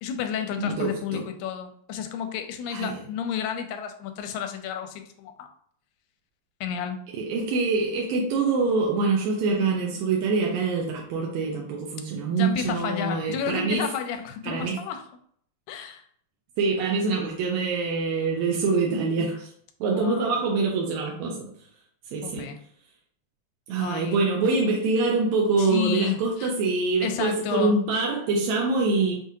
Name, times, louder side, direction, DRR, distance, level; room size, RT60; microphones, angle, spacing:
voice 1, 0.0-5.5 6.6-7.0 12.3-15.0 15.7-16.0 20.0-20.4 22.2-22.6 23.8-24.2 25.6-26.5 27.0-27.7, left 8 dB, 85° left, 6 dB, 2.3 m, -31 dB
voice 2, 0.6-1.2 2.7-3.0 7.2-13.9 14.4-14.8 16.6-19.5 19.8-21.5 22.1-22.5 23.7-29.1, right 4 dB, 80° right, -1 dB, 1.6 m, -25 dB
5.8 x 2.4 x 2.7 m, 0.62 s
omnidirectional pair, 4.0 m